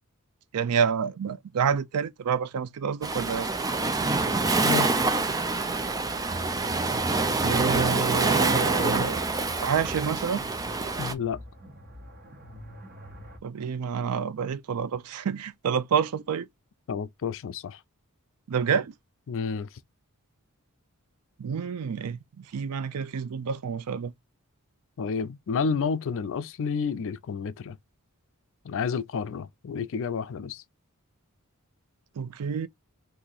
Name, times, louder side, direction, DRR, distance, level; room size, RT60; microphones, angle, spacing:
voice 1, 0.5-3.5 7.4-9.3 9.6-10.5 13.4-16.5 18.5-18.9 21.4-24.1 32.2-32.7, right 6 dB, 90° right, 0.4 m, -28 dB
Waves surf, 3.0-11.1, right 3 dB, 15° right, 0.4 m, -26 dB
voice 2, 4.6-4.9 11.0-11.4 16.9-17.8 19.3-19.7 25.0-27.8 28.6-30.6, left 5 dB, 60° left, 0.4 m, -30 dB
sound 1, 8.9-13.4, equal, 45° right, 1.2 m, -48 dB
2.8 x 2.6 x 3.8 m
head